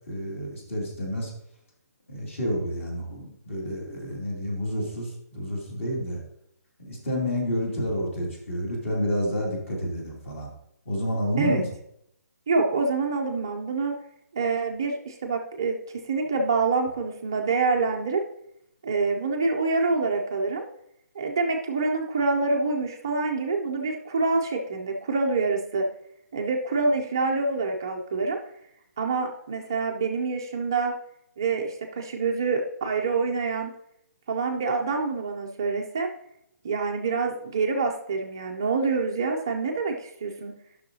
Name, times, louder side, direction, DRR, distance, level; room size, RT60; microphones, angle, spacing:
voice 1, 0.1-1.3 2.1-6.2 6.8-10.5 10.8-11.7, equal, 50° left, -2 dB, 2.7 m, -29 dB
voice 2, 12.5-13.9 14.3-18.2 18.8-20.7 21.2-25.9 26.3-28.4 29.0-31.0 31.4-33.7 34.3-36.1 36.6-40.5, right 4 dB, 15° right, 1 dB, 0.3 m, -26 dB
12.5 x 6.1 x 2.7 m, 0.77 s
hypercardioid pair, 180°, 9 cm